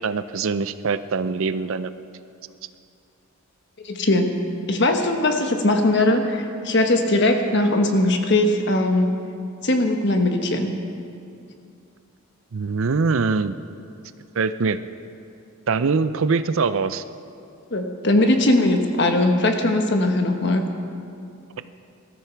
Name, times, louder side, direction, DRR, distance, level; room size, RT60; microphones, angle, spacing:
voice 1, 0.0-1.9 12.5-13.5 14.3-14.8 15.7-17.0, right 4 dB, 65° right, 13 dB, 0.5 m, -23 dB
voice 2, 3.8-4.4 4.7-9.1 9.6-10.8 17.7-20.7, left 1 dB, 50° left, 4 dB, 1.3 m, -20 dB
20.5 x 13.5 x 4.6 m, 2.5 s
head